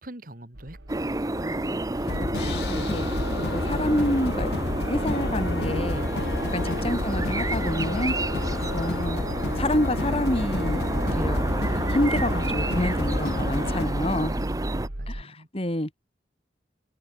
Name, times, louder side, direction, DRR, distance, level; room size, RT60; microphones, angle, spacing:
voice 1, 0.0-1.2 14.3-15.5, right 1 dB, 50° right, 2.4 m, -45 dB
sound 1, 0.5-15.2, right 1 dB, 85° right, 2.4 m, -36 dB
sound 2, 0.9-14.9, right 2 dB, 20° right, 0.8 m, -30 dB
voice 2, 1.3-1.8 2.5-3.0 3.4-4.5 4.9-6.0 6.5-8.1 8.7-9.2 9.5-10.8 11.1-11.5 11.9-14.4 15.1-15.9, left 1 dB, 35° left, 2.7 m, -28 dB
sound 3, 2.1-13.9, left 3 dB, 65° left, 0.7 m, -31 dB
open air
head